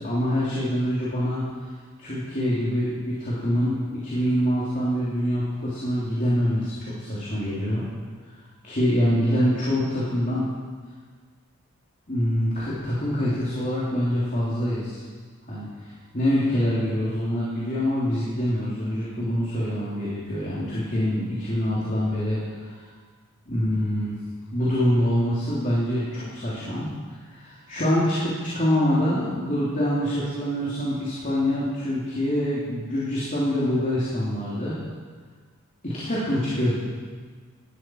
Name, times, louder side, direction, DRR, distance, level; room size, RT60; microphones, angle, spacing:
voice 1, 0.0-1.4 2.0-7.8 8.6-10.5 12.1-15.0 15.5-22.8 23.5-24.2 24.5-26.9 27.3-34.7 35.8-36.8, equal, 35° left, -8 dB, 3.2 m, -25 dB
17.5 x 13.0 x 4.6 m, 1.5 s
head